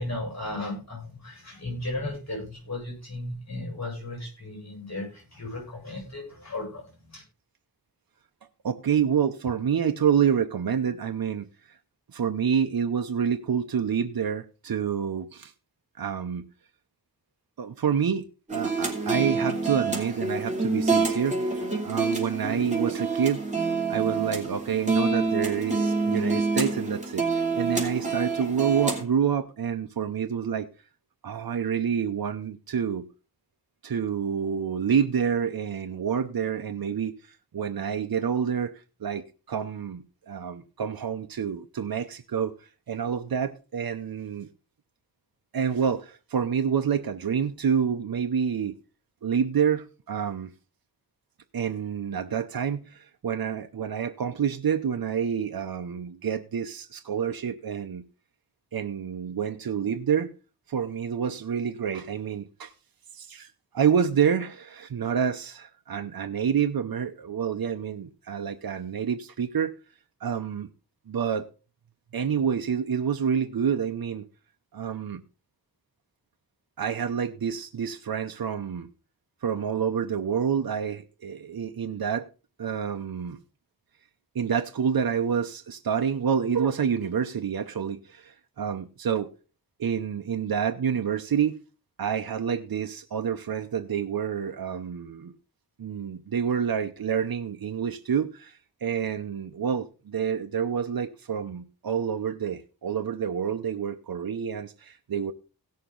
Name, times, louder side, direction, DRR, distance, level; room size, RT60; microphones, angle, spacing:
voice 1, 0.0-7.2, left 2 dB, 45° left, 8.0 m, -35 dB
voice 2, 8.6-11.5 12.1-15.5 16.0-16.5 17.6-18.2 18.5-21.6 21.8-23.4 23.9-27.2 27.6-30.7 31.2-33.1 33.8-37.1 37.5-38.7 39.0-42.5 42.9-44.5 45.5-48.8 49.2-50.5 51.5-58.0 58.7-60.3 60.7-62.7 63.2-63.5 63.7-69.7 70.2-70.7 71.1-71.5 72.1-74.2 74.7-75.2 76.8-78.9 79.4-82.3 82.6-83.4 84.3-89.3 89.8-91.6 92.0-95.3 95.8-98.5 98.8-105.3, right 7 dB, 75° right, 0.8 m, -28 dB
sound 1, 18.5-29.0, right 4 dB, 20° right, 3.1 m, -27 dB
17.0 x 6.5 x 3.8 m
wide cardioid pair, 85°, 36 cm